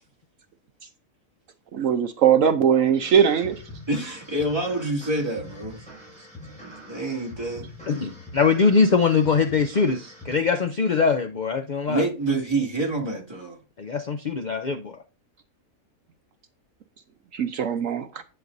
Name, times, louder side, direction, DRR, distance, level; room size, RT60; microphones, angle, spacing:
voice 1, 1.7-3.6 17.3-18.2, right 8 dB, 65° right, 1.0 m, -20 dB
sound 1, 3.0-10.4, left 1 dB, 5° left, 5.9 m, -44 dB
voice 2, 3.9-5.8 6.6-7.7 11.9-13.6, right 2 dB, 15° right, 2.4 m, -27 dB
voice 3, 7.9-12.0 13.8-15.0, left 5 dB, 55° left, 0.5 m, -22 dB
11.0 x 7.9 x 2.6 m
omnidirectional pair, 1.5 m